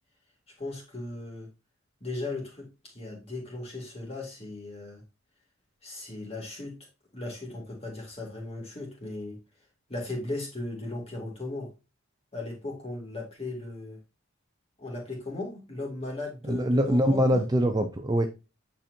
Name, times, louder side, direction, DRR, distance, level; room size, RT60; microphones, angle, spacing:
voice 1, 0.6-1.5 2.0-5.0 5.8-6.7 7.1-9.4 9.9-11.7 12.3-14.0 14.8-17.5, left 2 dB, 30° left, 2.3 m, -37 dB
voice 2, 16.5-18.3, equal, 20° right, 0.5 m, -23 dB
9.1 x 4.4 x 2.7 m
head